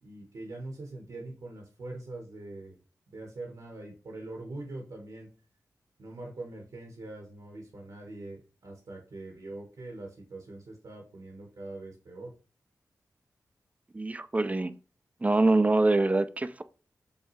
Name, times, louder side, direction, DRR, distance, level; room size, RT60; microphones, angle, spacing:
voice 1, 0.0-2.8 3.1-5.3 6.0-12.3, right 2 dB, 75° right, 1.2 m, -43 dB
voice 2, 13.9-14.7 15.2-16.6, right 2 dB, 20° right, 0.4 m, -24 dB
5.4 x 2.3 x 3.1 m
cardioid pair, 55°, 7 cm